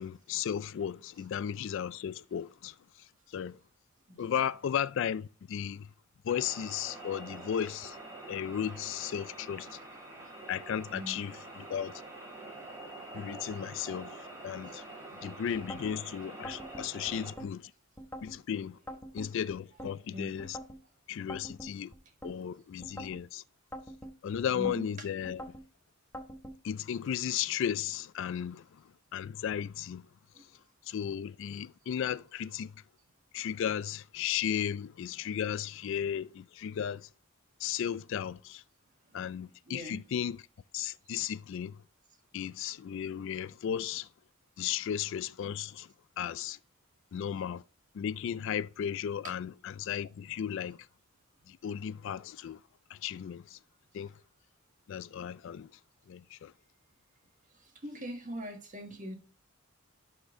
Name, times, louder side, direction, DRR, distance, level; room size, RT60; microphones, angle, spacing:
voice 1, 0.0-2.7 3.3-3.6 4.2-5.9 6.2-8.0 8.3-9.8 10.5-11.9 13.1-14.2 14.4-14.8 15.2-17.7 18.2-18.8 19.1-20.6 21.1-21.9 22.2-23.4 24.2-25.4 26.6-28.8 29.1-30.0 30.9-32.7 33.3-37.1 37.6-38.6 39.1-40.4 40.7-41.8 42.3-44.1 44.6-45.9 46.2-46.6 47.1-47.6 47.9-50.8 51.5-52.6 52.9-53.6 53.9-54.1 54.9-55.7 56.1-56.5, left 9 dB, 60° left, 0.3 m, -35 dB
sound 1, 6.3-17.3, right 2 dB, 15° right, 2.7 m, -46 dB
sound 2, 15.5-16.0 16.4-17.5 18.0-18.4 18.9-19.9 20.4-20.8 21.3-22.4 22.8-23.2 23.7-24.8 25.2-25.7 26.1-26.6, equal, 10° left, 0.9 m, -44 dB
voice 2, 24.5-24.9 30.3-30.4 39.7-40.0 49.2-49.3 57.8-59.2, equal, 40° right, 1.6 m, -41 dB
11.5 x 4.4 x 3.6 m
head